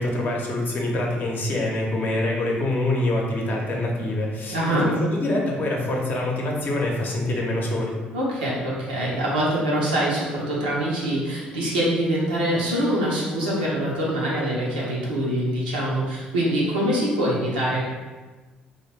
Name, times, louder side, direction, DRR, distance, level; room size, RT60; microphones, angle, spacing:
voice 1, 0.0-8.0, left 1 dB, 45° left, -1 dB, 0.7 m, -25 dB
voice 2, 4.5-4.8 8.1-17.9, right 1 dB, 85° right, -5 dB, 0.6 m, -24 dB
2.3 x 2.2 x 3.2 m, 1.3 s
hypercardioid pair, 50°, 5 cm